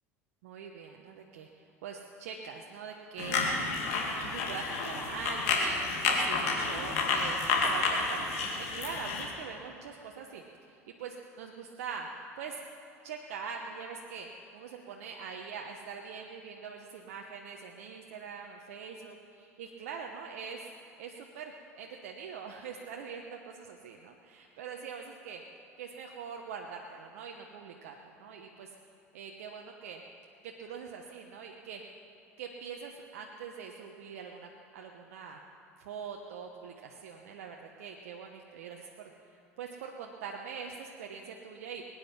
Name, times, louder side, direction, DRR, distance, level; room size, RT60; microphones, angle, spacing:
voice 1, 0.4-1.5 1.8-3.7 4.2-12.6 13.0-20.7 21.0-25.4 25.8-28.7 29.1-30.0 30.4-31.8 32.4-35.4 35.8-41.8, right 6 dB, 70° right, 2 dB, 1.0 m, -43 dB
sound 1, 3.2-9.3, left 4 dB, 70° left, 2.4 m, -30 dB
22.0 x 9.8 x 5.8 m, 2.8 s
hypercardioid pair, 75°, 8 cm